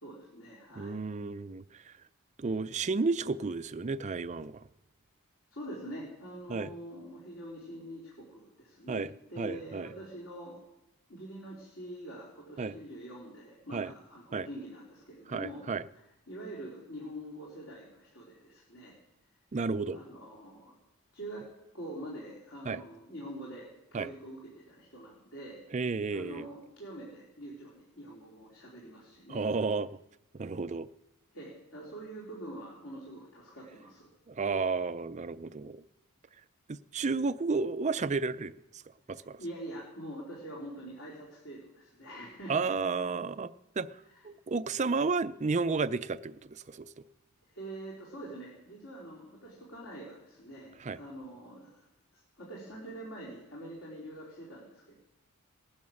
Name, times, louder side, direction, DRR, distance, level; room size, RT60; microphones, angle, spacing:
voice 1, 0.0-1.0 5.5-9.0 9.3-10.6 11.1-15.6 15.9-18.9 19.9-20.8 21.1-21.5 21.7-25.6 26.1-29.4 31.3-34.1 39.2-42.7 44.1-44.2 47.5-51.9 52.1-55.0, right 1 dB, 60° left, -5 dB, 4.0 m, -45 dB
voice 2, 0.8-1.9 2.4-4.7 6.5-6.7 8.9-9.9 12.6-12.8 13.7-13.9 14.3-14.5 15.3-15.8 19.5-20.0 22.7-22.8 23.9-24.1 25.7-26.5 29.3-29.9 30.3-30.9 34.3-35.8 36.7-38.8 39.1-39.4 42.5-46.9 50.8-51.0, right 4 dB, 30° right, 13 dB, 0.4 m, -32 dB
19.0 x 10.5 x 6.5 m, 0.92 s
head